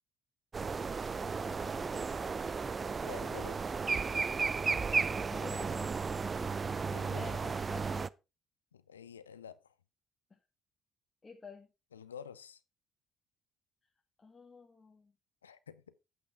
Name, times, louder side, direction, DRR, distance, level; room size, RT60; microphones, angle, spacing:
sound 1, 0.5-8.1, right 5 dB, 35° right, 0.5 m, -34 dB
voice 1, 1.4-2.2 5.3-6.8 7.2-8.1 10.3-10.4 11.2-11.7 14.2-15.1, left 4 dB, 25° left, 1.5 m, -50 dB
voice 2, 3.0-3.6 6.9-7.3 8.7-9.7 11.9-12.6 15.4-15.8, left 7 dB, 85° left, 0.5 m, -49 dB
8.7 x 8.5 x 4.6 m
figure-of-eight pair, 50°, 0 cm